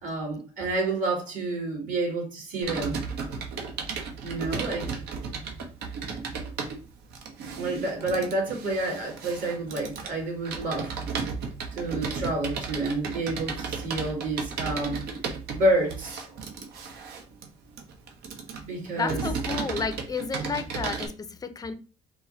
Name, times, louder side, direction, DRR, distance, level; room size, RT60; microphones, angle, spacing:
voice 1, 0.0-3.0 4.2-5.0 7.6-10.9 11.7-15.1 15.5-16.4 18.6-19.2, right 2 dB, 50° right, 2.3 m, -29 dB
Computer keyboard, 2.6-21.1, right 5 dB, 70° right, 1.0 m, -34 dB
voice 2, 19.0-21.7, left 5 dB, 20° left, 0.5 m, -31 dB
4.8 x 2.2 x 4.0 m
cardioid pair, 110°, 17 cm